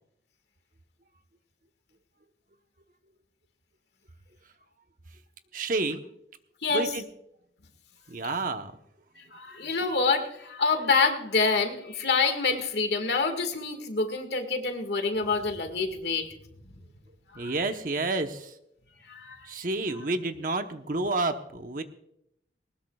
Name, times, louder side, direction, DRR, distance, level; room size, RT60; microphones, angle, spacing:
voice 1, 5.5-6.0 6.7-7.0 8.1-8.8 9.6-9.7 17.3-18.6 19.4-21.8, right 2 dB, 50° right, 7 dB, 1.0 m, -30 dB
voice 2, 9.3-16.3 17.3-17.5 19.1-19.5, left 4 dB, 70° left, 6 dB, 1.9 m, -27 dB
20.5 x 19.5 x 2.4 m, 0.74 s
head